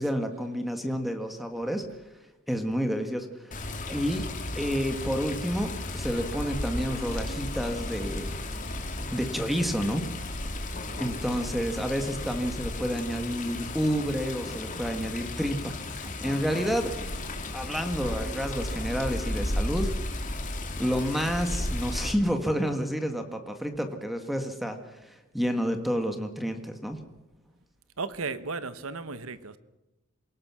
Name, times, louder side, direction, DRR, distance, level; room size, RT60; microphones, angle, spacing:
voice 1, 0.0-1.8 2.5-3.6 3.9-4.2 4.5-8.4 9.1-10.1 11.0-16.9 17.5-19.9 20.8-24.8 25.1-27.0, equal, ahead, 6 dB, 1.7 m, -29 dB
Water, 3.5-22.1, left 1 dB, 40° left, 2.6 m, -34 dB
voice 2, 28.0-29.6, right 4 dB, 70° right, 13 dB, 1.2 m, -34 dB
28.0 x 18.0 x 6.2 m, 1.0 s
head